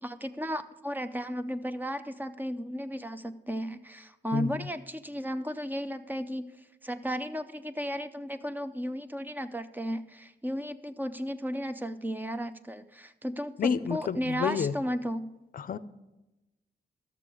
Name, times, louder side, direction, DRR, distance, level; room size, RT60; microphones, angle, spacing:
voice 1, 0.0-6.5 6.8-15.3, equal, 10° right, 11 dB, 0.5 m, -34 dB
voice 2, 4.3-4.6 13.6-14.7 15.5-15.8, left 7 dB, 55° left, 15 dB, 0.5 m, -30 dB
13.0 x 6.8 x 4.9 m, 0.99 s
wide cardioid pair, 120°, 18 cm